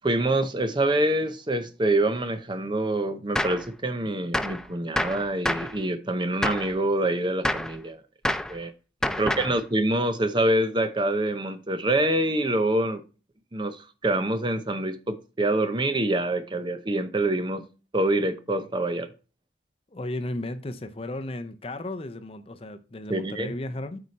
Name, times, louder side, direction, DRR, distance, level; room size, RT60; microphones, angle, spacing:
voice 1, 0.0-8.0 8.5-8.7 9.2-13.0 13.5-17.7 17.9-19.1 23.1-23.5, right 1 dB, 25° right, 0.7 m, -26 dB
Gunshot gunfire, 3.4-3.7 4.3-4.6 5.0-5.8 6.4-6.7 7.4-7.8 8.3-8.6 9.0-9.6, left 1 dB, 5° left, 0.4 m, -27 dB
voice 2, 9.1-9.5 19.9-24.0, left 1 dB, 35° left, 0.7 m, -35 dB
8.5 x 4.9 x 4.1 m
head